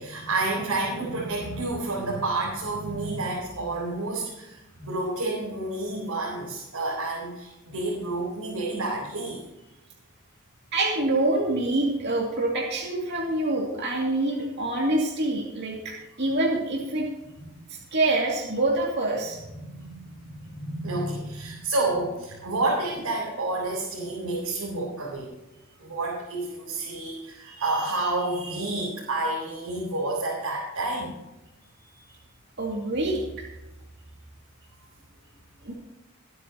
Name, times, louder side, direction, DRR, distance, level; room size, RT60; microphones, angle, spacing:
voice 1, 0.0-9.4 17.4-17.6 19.5-25.3 25.8-31.1, right 2 dB, 85° right, -4 dB, 4.0 m, -30 dB
voice 2, 10.7-17.1 17.7-19.4 32.6-33.5 35.6-35.7, right 2 dB, 50° right, -3 dB, 2.5 m, -26 dB
22.0 x 9.7 x 3.0 m, 0.97 s
head